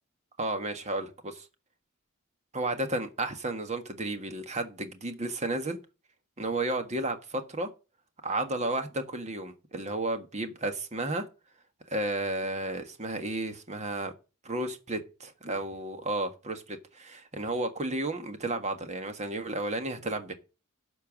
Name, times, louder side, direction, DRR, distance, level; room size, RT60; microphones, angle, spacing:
voice 1, 0.4-1.5 2.5-5.8 6.4-7.7 8.2-11.2 11.9-14.1 14.4-20.3, right 2 dB, 35° right, 1.5 m, -32 dB
12.0 x 4.6 x 7.4 m
head